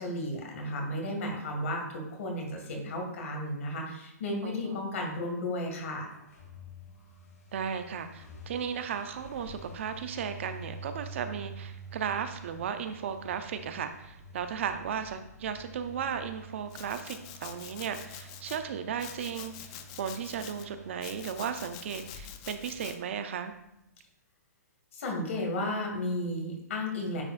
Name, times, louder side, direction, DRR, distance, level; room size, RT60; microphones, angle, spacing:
voice 1, 0.0-6.1 24.9-27.2, left 1 dB, 50° left, 1 dB, 2.0 m, -33 dB
voice 2, 4.4-4.9 7.5-19.7 20.0-23.5, right 7 dB, 45° right, 9 dB, 0.5 m, -35 dB
sound 1, 6.1-23.5, right 1 dB, 70° left, 2.4 m, -49 dB
Domestic sounds home sounds, 16.7-18.6 19.0-20.6 21.0-23.0, left 10 dB, 20° left, 0.3 m, -46 dB
9.5 x 4.8 x 2.5 m, 0.84 s
hypercardioid pair, 170°, 9 cm